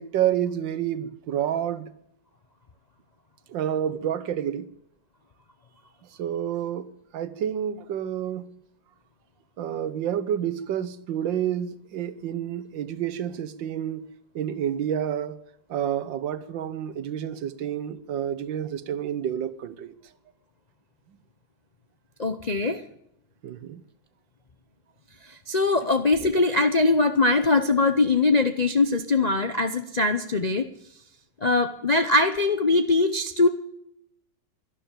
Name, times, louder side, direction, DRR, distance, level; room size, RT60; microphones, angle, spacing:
voice 1, 0.0-1.9 3.5-4.7 6.2-8.6 9.6-14.0 14.3-15.4 15.7-19.9 23.4-23.8, right 10 dB, 85° right, 1.7 m, -29 dB
voice 2, 22.2-22.8 25.5-30.6 31.4-33.5, left 3 dB, 50° left, 0.5 m, -22 dB
12.5 x 11.5 x 8.9 m
omnidirectional pair, 2.0 m